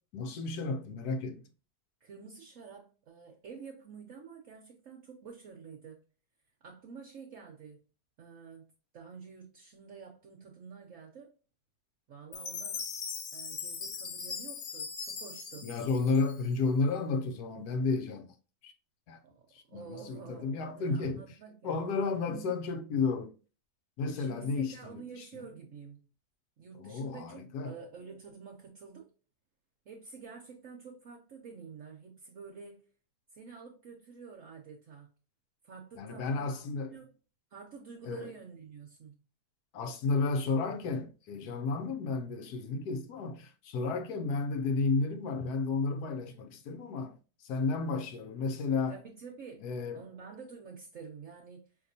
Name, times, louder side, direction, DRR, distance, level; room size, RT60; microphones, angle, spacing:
voice 1, 0.1-1.4 15.6-18.3 18.6-18.7 19.1-19.2 19.5-21.2 21.6-23.3 24.0-25.5 26.8-27.8 36.0-37.0 38.0-38.3 39.7-49.0 49.6-50.0, left 4 dB, 75° left, 1.1 m, -32 dB
voice 2, 2.0-6.0 6.6-7.8 8.2-8.7 8.9-11.3 12.1-12.9 13.3-15.7 19.2-21.8 22.3-22.4 24.1-26.1 26.6-29.1 29.8-32.8 33.3-35.1 35.6-37.1 37.5-39.2 48.9-49.6 49.9-51.7, right 5 dB, 60° right, 1.1 m, -49 dB
Chime, 12.3-16.7, left 5 dB, 55° left, 0.9 m, -40 dB
5.1 x 2.9 x 2.6 m
omnidirectional pair, 1.7 m